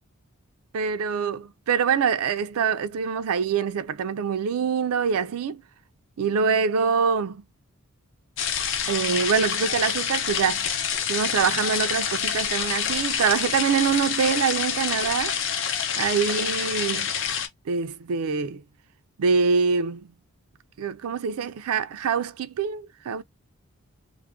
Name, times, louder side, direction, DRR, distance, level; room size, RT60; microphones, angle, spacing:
voice 1, 0.7-5.6 6.2-7.4 8.9-10.7 11.1-15.4 16.0-17.1 17.7-18.6 19.2-20.0 20.8-23.2, right 6 dB, 80° right, 0.4 m, -25 dB
sound 1, 8.4-17.5, left 7 dB, 55° left, 0.6 m, -27 dB
2.4 x 2.1 x 3.5 m
head